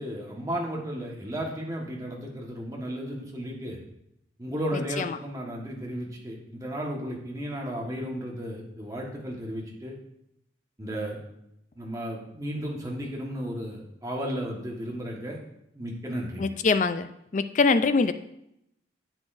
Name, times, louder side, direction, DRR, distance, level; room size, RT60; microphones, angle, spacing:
voice 1, 0.0-3.8 4.4-9.9 10.8-11.2 11.7-15.4 15.7-16.6, equal, 20° right, -2 dB, 1.4 m, -34 dB
voice 2, 4.7-5.2 16.4-18.1, left 4 dB, 40° left, 11 dB, 0.4 m, -24 dB
10.5 x 8.2 x 2.6 m, 0.80 s
head